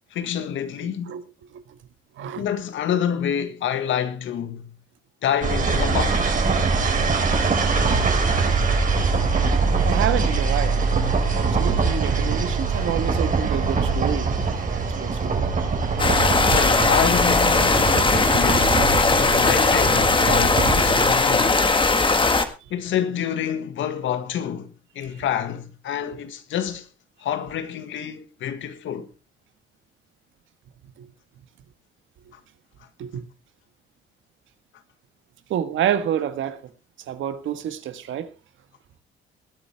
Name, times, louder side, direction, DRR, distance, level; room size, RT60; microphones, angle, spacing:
voice 1, 0.1-1.2 2.4-4.7 5.2-6.4 16.4-18.9 19.2-21.7 22.7-26.9 27.2-29.1, left 9 dB, 75° left, 1.8 m, -28 dB
sound 1, 5.4-21.1, right 4 dB, 40° right, 3.9 m, -23 dB
voice 2, 9.8-10.8 11.3-15.5 25.0-25.1 31.0-31.1 33.0-33.2 35.5-36.6 37.1-38.3, right 10 dB, 75° right, 1.7 m, -28 dB
sound 2, 16.0-22.5, left 3 dB, 25° left, 1.8 m, -19 dB
19.5 x 10.5 x 3.5 m
cardioid pair, 90°, 20 cm